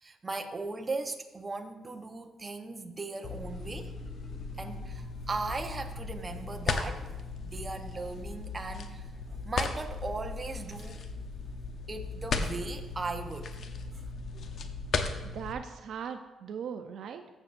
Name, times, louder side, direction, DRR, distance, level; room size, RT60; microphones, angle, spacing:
voice 1, 0.0-3.9 4.6-11.0 11.9-13.5 13.9-14.0, right 3 dB, 25° right, 5 dB, 1.0 m, -38 dB
sound 1, 3.2-15.5, left 4 dB, 60° left, 0.8 m, -37 dB
Marimba xylophone, 3.3-6.0, left 3 dB, 45° left, 1.9 m, -58 dB
voice 2, 15.2-17.3, right 7 dB, 70° right, 7 dB, 0.5 m, -39 dB
14.5 x 7.1 x 2.6 m, 1.2 s
cardioid pair, 90°, 0 cm